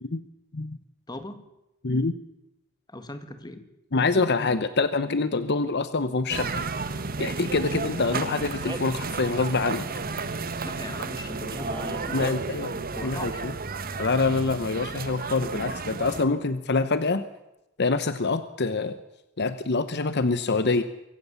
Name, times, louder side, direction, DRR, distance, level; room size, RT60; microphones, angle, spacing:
voice 1, 1.1-1.4 2.9-3.6 10.6-12.4 13.0-13.6, left 1 dB, 20° left, 9 dB, 1.9 m, -39 dB
voice 2, 1.8-2.1 3.9-6.6 7.2-9.8 12.1-12.7 13.0-13.5 14.0-17.2 17.8-19.0 19.4-20.8, left 3 dB, 55° left, 12 dB, 0.9 m, -25 dB
sound 1, 6.3-16.2, right 4 dB, 45° right, 1.3 m, -32 dB
Male speech man speaking, 8.1-9.0 11.5-12.4, right 2 dB, 20° right, 1.3 m, -38 dB
24.0 x 15.0 x 7.2 m, 0.89 s
head